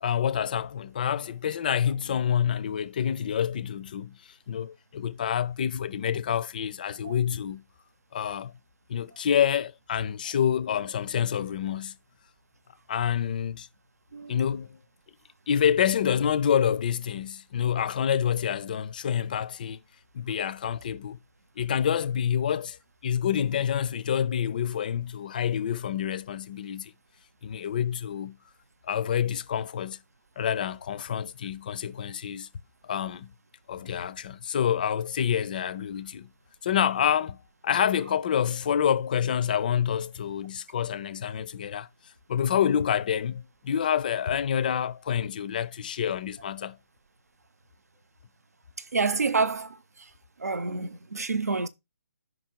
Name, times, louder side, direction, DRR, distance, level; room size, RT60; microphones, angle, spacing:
voice 1, 0.0-4.1 4.5-7.6 8.1-8.5 8.9-11.9 12.9-13.7 14.3-14.8 15.5-19.8 20.1-21.2 21.6-22.8 23.0-26.9 27.4-28.3 28.8-30.0 30.4-32.5 32.8-33.3 33.7-36.3 36.6-37.4 37.6-41.9 42.3-46.8, left 8 dB, 35° left, 0.4 m, -27 dB
voice 2, 48.9-49.8 50.4-51.7, right 4 dB, 85° right, 0.9 m, -28 dB
5.5 x 4.5 x 4.5 m
hypercardioid pair, 160°, 8 cm